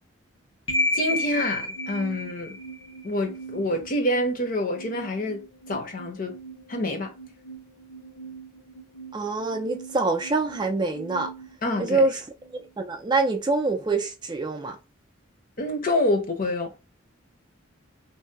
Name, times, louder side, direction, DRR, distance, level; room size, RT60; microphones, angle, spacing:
sound 1, 0.7-12.7, left 1 dB, 75° left, 0.7 m, -35 dB
voice 1, 0.9-2.6 3.0-5.4 5.7-6.3 6.7-7.1 11.6-12.1 15.6-16.7, left 1 dB, 45° left, 0.7 m, -27 dB
voice 2, 9.1-11.3 11.8-12.2 12.5-14.8, right 3 dB, 20° right, 0.4 m, -25 dB
2.7 x 2.1 x 3.4 m
head